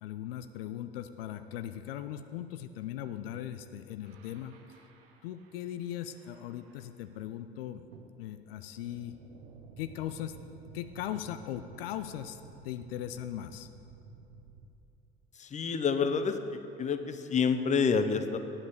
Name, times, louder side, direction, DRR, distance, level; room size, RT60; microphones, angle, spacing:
voice 1, 0.0-4.8 5.2-7.9 8.2-9.2 9.8-10.4 10.7-12.4 12.6-13.7, left 11 dB, 75° left, 10 dB, 0.5 m, -39 dB
sound 1, 4.0-7.2 7.9-14.7, right 4 dB, 80° right, 0.8 m, -54 dB
voice 2, 15.4-18.4, left 5 dB, 25° left, 9 dB, 0.6 m, -28 dB
9.5 x 5.4 x 6.7 m, 2.8 s
hypercardioid pair, 60°, 29 cm